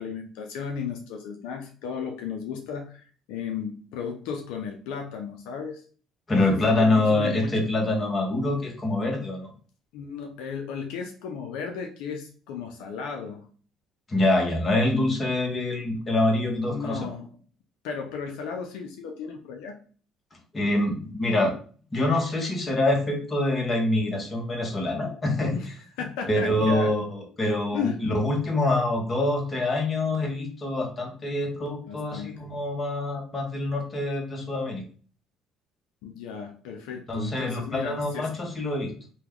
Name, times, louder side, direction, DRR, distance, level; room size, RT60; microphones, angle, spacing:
voice 1, 0.0-5.8 6.3-7.7 9.9-13.5 16.7-17.3 17.8-19.8 25.5-25.7 26.0-26.9 27.7-28.0 31.9-32.3 36.0-38.3, left 6 dB, 85° left, 3 dB, 0.5 m, -35 dB
voice 2, 6.3-9.5 14.1-17.1 20.5-21.5 21.9-25.5 26.3-34.8 37.1-38.9, left 2 dB, 30° left, 1 dB, 1.1 m, -25 dB
2.9 x 2.2 x 3.6 m, 0.42 s
supercardioid pair, 80°, 0 cm